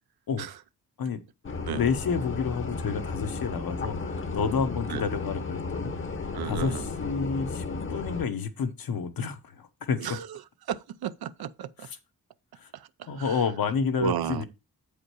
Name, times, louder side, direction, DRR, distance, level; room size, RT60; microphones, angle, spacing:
sound 1, 1.4-8.2, left 3 dB, 35° left, 0.8 m, -34 dB
voice 1, 1.7-10.0 12.6-12.7 13.1-14.4, left 6 dB, 75° left, 1.2 m, -30 dB
voice 2, 6.3-6.9 10.0-11.9 12.7-13.4 14.0-14.4, right 10 dB, 85° right, 0.6 m, -34 dB
8.3 x 5.0 x 4.7 m
wide cardioid pair, 135°, 36 cm